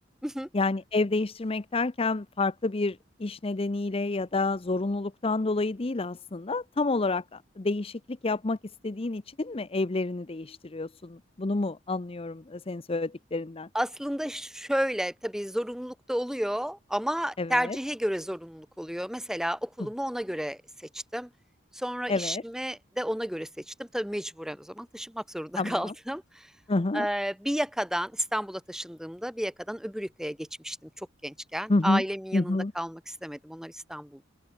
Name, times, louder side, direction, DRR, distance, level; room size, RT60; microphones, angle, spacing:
voice 1, 0.5-8.6 8.8-13.7 17.4-17.8 22.1-22.4 25.6-25.9 26.7-27.1 31.7-32.0 32.3-32.7, left 2 dB, 30° left, 0.7 m, -29 dB
voice 2, 13.7-21.3 21.7-26.5 26.9-34.2, equal, 5° right, 2.4 m, -32 dB
open air
head